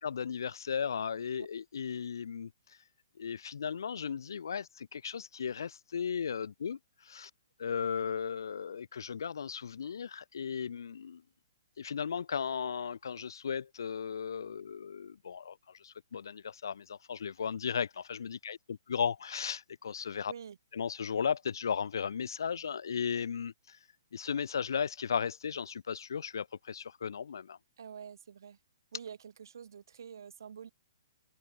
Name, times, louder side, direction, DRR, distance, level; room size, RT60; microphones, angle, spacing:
voice 1, 0.0-2.5 3.2-7.3 7.6-11.2 11.8-20.3 20.7-23.8 24.1-27.6, left 7 dB, 75° left, 1.8 m, -36 dB
voice 2, 20.3-20.6 27.8-28.6 28.9-30.7, right 7 dB, 70° right, 7.4 m, -47 dB
hypercardioid pair, 145°, 2 cm